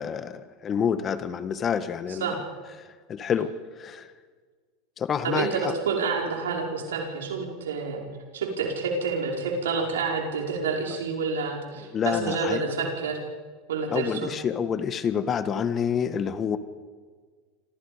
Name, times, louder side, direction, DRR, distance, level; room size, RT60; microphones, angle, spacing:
voice 1, 0.0-2.3 2.8-4.1 5.0-5.7 11.8-12.6 13.9-16.6, left 7 dB, 35° left, 11 dB, 1.8 m, -28 dB
voice 2, 5.2-8.0 8.3-13.2 13.7-14.4, right 4 dB, 85° right, 1 dB, 5.1 m, -28 dB
28.0 x 26.5 x 5.3 m, 1.5 s
hypercardioid pair, 90°, 0 cm